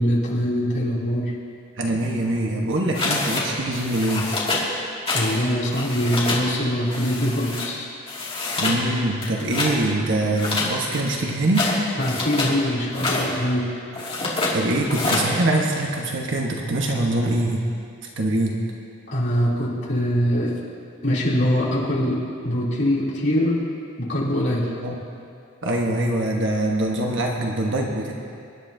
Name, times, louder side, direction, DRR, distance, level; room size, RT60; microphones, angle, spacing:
voice 1, 0.0-1.3 5.1-7.9 12.0-13.7 19.1-20.5 21.0-23.6 24.0-24.6, equal, 55° left, -6 dB, 3.1 m, -23 dB
voice 2, 1.8-4.3 8.6-11.8 14.5-17.7 18.2-18.6 24.8-25.0 25.6-28.1, right 1 dB, 60° right, -1 dB, 1.3 m, -23 dB
sound 1, 2.9-3.5 3.7-4.7 5.1-5.4 5.7-6.5 6.9-7.7 8.1-8.8 9.2-9.8 10.3-12.6 12.9-13.3 13.9-14.6 14.9-15.3, left 3 dB, 25° left, 2.4 m, -26 dB
24.5 x 11.0 x 2.8 m, 2.4 s
head